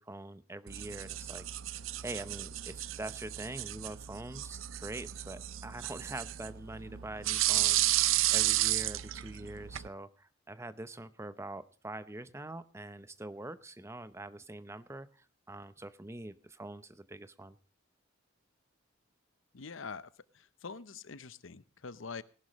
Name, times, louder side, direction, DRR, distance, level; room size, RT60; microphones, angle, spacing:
voice 1, 0.0-1.5 2.0-8.0 8.3-17.6, right 2 dB, 15° right, 13 dB, 0.7 m, -44 dB
sound 1, 0.7-9.9, right 15 dB, 90° right, 0.5 m, -33 dB
voice 2, 19.5-22.2, left 5 dB, 80° left, 15 dB, 0.8 m, -45 dB
19.0 x 11.5 x 3.1 m, 0.39 s
head